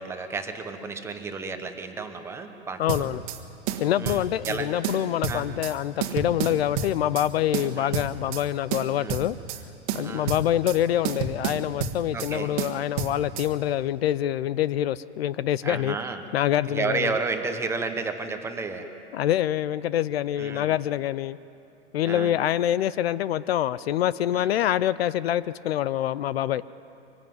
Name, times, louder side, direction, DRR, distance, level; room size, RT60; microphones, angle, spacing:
voice 1, 0.0-3.1 4.0-4.7 5.3-5.4 7.8-8.0 9.0-9.2 10.0-10.3 12.1-12.5 15.6-16.2 16.7-18.8 20.4-20.6 22.0-22.3 24.3-24.5, right 4 dB, 5° right, 6 dB, 0.9 m, -32 dB
voice 2, 2.8-3.2 3.8-9.4 9.9-16.0 16.3-17.2 19.1-21.4 21.9-26.6, left 12 dB, 60° left, 18 dB, 0.6 m, -25 dB
sound 1, 2.9-3.4 3.7-4.6 4.8-5.7 6.0-7.3 7.5-8.4 8.7-9.6 9.9-10.8 11.0-12.3 12.6-13.5, right 7 dB, 35° right, 1.6 m, -30 dB
24.5 x 20.0 x 9.3 m, 2.7 s
hypercardioid pair, 160°, 35 cm